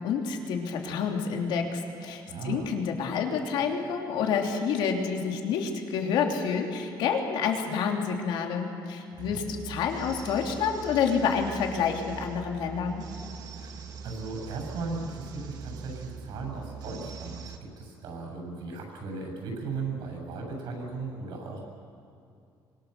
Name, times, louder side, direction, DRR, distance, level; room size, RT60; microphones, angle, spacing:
voice 1, 0.0-13.0, left 6 dB, 75° left, 2 dB, 2.9 m, -28 dB
voice 2, 2.2-2.7 9.2-9.4 13.6-21.6, right 4 dB, 70° right, 1 dB, 7.6 m, -37 dB
sound 1, 9.2-17.6, right 5 dB, 55° right, 1.5 m, -42 dB
25.5 x 24.5 x 6.8 m, 2.5 s
cardioid pair, 180°, 8 cm